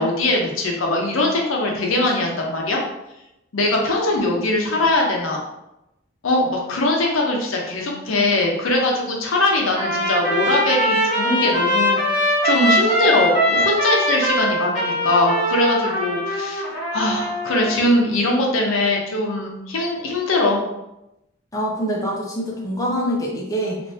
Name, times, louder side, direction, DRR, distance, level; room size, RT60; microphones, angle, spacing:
voice 1, 0.0-2.8 3.5-5.4 6.2-16.7 16.9-20.7, left 2 dB, 85° left, 0 dB, 0.7 m, -21 dB
Trumpet, 9.7-17.9, equal, 35° left, 1.0 m, -21 dB
voice 2, 21.5-23.8, equal, 15° left, -3 dB, 0.5 m, -25 dB
3.3 x 2.5 x 2.7 m, 0.90 s
head